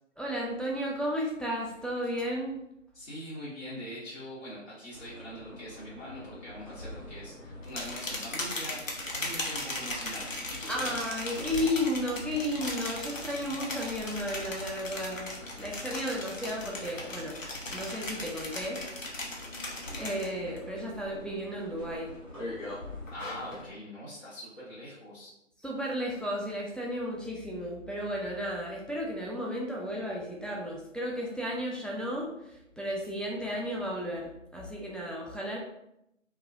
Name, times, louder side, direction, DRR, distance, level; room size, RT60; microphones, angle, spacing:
voice 1, 0.2-2.6 10.7-15.3 15.6-17.3 17.7-18.8 20.0-22.1 25.6-35.6, equal, 5° left, -4 dB, 0.3 m, -33 dB
voice 2, 2.9-11.0 23.1-25.3, equal, 60° left, -8 dB, 1.0 m, -43 dB
sound 1, 4.9-23.7, left 1 dB, 25° left, 0.9 m, -46 dB
sound 2, 7.6-20.6 20.9-21.4 21.8-23.7, left 2 dB, 80° left, 0.9 m, -38 dB
2.9 x 2.2 x 2.6 m, 0.82 s
figure-of-eight pair, 170°, 39 cm